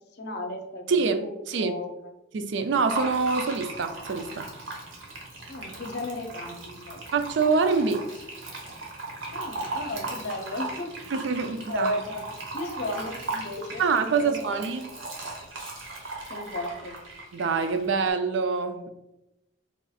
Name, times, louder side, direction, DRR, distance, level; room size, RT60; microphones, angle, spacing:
voice 1, 0.1-1.9 5.5-7.1 9.3-10.9 11.7-12.2 12.5-14.6 16.3-17.0, left 1 dB, 60° left, 0.6 m, -35 dB
voice 2, 0.9-1.2 1.5-1.7 2.3-4.5 7.1-8.0 11.1-11.9 13.8-14.9 17.3-18.9, right 4 dB, 65° right, 0.4 m, -25 dB
Fill (with liquid), 2.9-18.1, right 2 dB, 85° right, 1.1 m, -37 dB
3.6 x 2.4 x 4.1 m
head